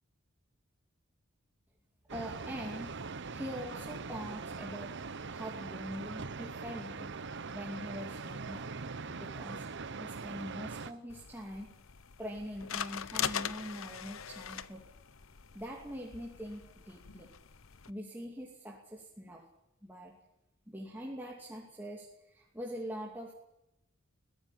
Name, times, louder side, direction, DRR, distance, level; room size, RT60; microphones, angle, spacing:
voice 1, 2.1-3.0 3.3-5.0 5.3-7.1 7.5-8.6 9.2-9.7 10.0-11.7 12.2-14.8 15.5-17.3 17.9-19.4 19.8-20.1 20.7-23.3, equal, 10° right, -2 dB, 2.6 m, -43 dB
sound 1, 2.1-10.9, right 4 dB, 60° right, 0.9 m, -42 dB
sound 2, 11.1-17.9, left 8 dB, 75° left, 0.9 m, -41 dB
22.5 x 15.0 x 9.9 m, 0.89 s
head